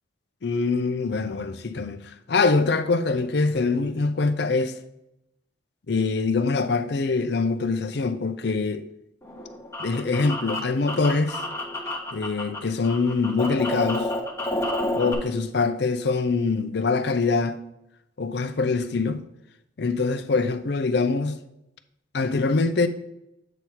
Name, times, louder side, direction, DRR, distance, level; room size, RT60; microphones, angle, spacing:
voice 1, 0.4-4.7 5.9-8.8 9.8-11.4 12.1-14.1 14.9-17.6 18.2-19.2 19.8-21.4 22.1-22.9, left 4 dB, 60° left, 0.5 m, -24 dB
sound 1, 9.2-12.6 12.8-15.1, left 1 dB, 15° left, 1.0 m, -30 dB
8.0 x 3.1 x 5.6 m
head